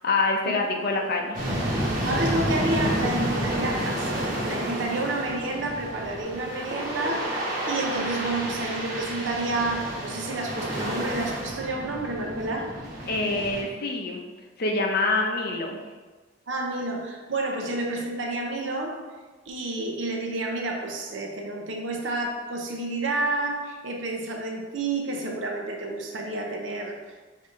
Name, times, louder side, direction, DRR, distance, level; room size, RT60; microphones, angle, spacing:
voice 1, 0.0-1.4 13.1-14.2 14.6-15.8, left 3 dB, 50° left, 1 dB, 0.6 m, -25 dB
sound 1, 1.3-13.6, right 1 dB, 45° right, 1.3 m, -30 dB
voice 2, 2.0-7.3 7.7-12.7 16.5-19.0 19.5-27.1, right 2 dB, 75° right, 1 dB, 0.7 m, -30 dB
5.2 x 2.7 x 3.7 m, 1.3 s
head